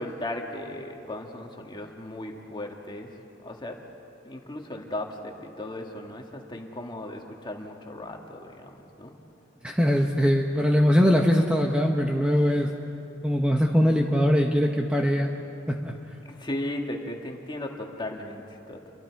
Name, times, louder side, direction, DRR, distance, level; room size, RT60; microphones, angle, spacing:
voice 1, 0.0-3.1 3.4-3.8 4.3-9.1 16.4-18.9, left 1 dB, 25° left, 2 dB, 1.9 m, -36 dB
voice 2, 9.6-12.7 13.2-15.3 15.7-15.9, equal, 5° right, 1 dB, 1.0 m, -22 dB
30.0 x 23.0 x 4.7 m, 2.8 s
head